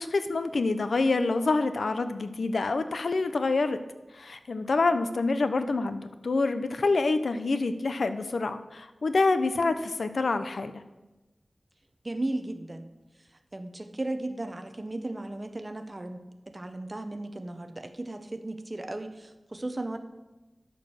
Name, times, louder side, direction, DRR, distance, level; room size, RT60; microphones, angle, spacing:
voice 1, 0.0-3.8 4.1-10.8, left 3 dB, 80° left, 10 dB, 0.7 m, -27 dB
voice 2, 12.0-12.9 13.5-20.0, right 2 dB, 30° right, 8 dB, 0.9 m, -35 dB
10.5 x 6.7 x 6.4 m, 1.1 s
wide cardioid pair, 85°, 0 cm